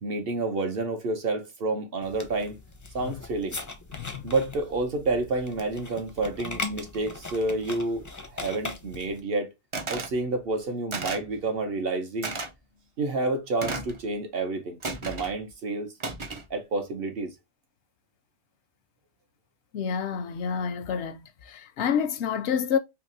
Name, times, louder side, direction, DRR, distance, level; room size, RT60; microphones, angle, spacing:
voice 1, 0.0-2.6 2.9-3.6 4.2-8.0 8.3-9.5 9.9-12.3 13.0-15.9 16.5-17.3, right 2 dB, 60° right, 1.1 m, -29 dB
sound 1, 2.0-9.2, left 3 dB, 25° left, 0.4 m, -39 dB
voice 2, 3.9-4.2 19.7-21.2 21.5-22.8, left 7 dB, 85° left, 0.9 m, -28 dB
sound 2, 9.7-10.1 10.9-11.3 12.2-12.5 13.6-14.0 14.8-15.3 16.0-16.5, right 3 dB, 35° right, 0.5 m, -33 dB
3.5 x 2.8 x 2.6 m
omnidirectional pair, 1.1 m